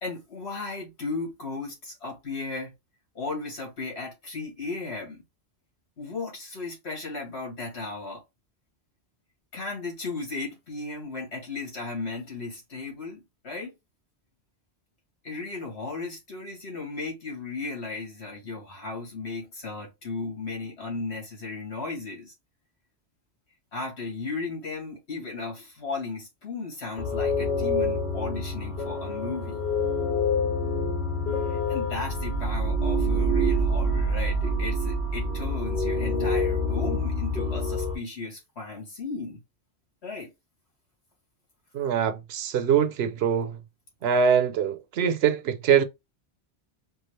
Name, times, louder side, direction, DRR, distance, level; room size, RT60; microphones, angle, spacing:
voice 1, 0.0-2.7 3.1-5.2 6.0-8.2 9.5-13.7 15.2-22.3 23.7-29.6 31.5-39.4 40.0-40.3, left 3 dB, 75° left, 2.2 m, -35 dB
sound 1, 27.0-37.9, left 1 dB, 40° left, 2.1 m, -26 dB
voice 2, 41.7-43.6 44.0-45.8, right 7 dB, 70° right, 0.8 m, -23 dB
4.6 x 2.4 x 3.1 m
omnidirectional pair, 1.1 m